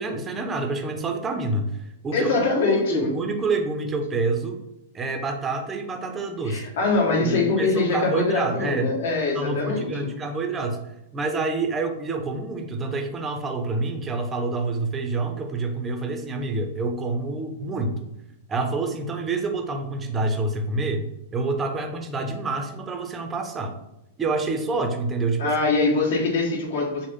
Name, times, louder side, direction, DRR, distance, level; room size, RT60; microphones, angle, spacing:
voice 1, 0.0-4.6 4.9-6.6 7.2-8.9 9.3-10.8 11.1-18.1 18.5-21.1 21.3-23.7 24.2-25.5, right 3 dB, 15° right, 4 dB, 0.5 m, -27 dB
voice 2, 2.1-3.1 6.5-10.1 25.4-27.1, left 3 dB, 65° left, -1 dB, 1.4 m, -23 dB
6.1 x 2.1 x 3.6 m, 0.89 s
supercardioid pair, 160°, 0 cm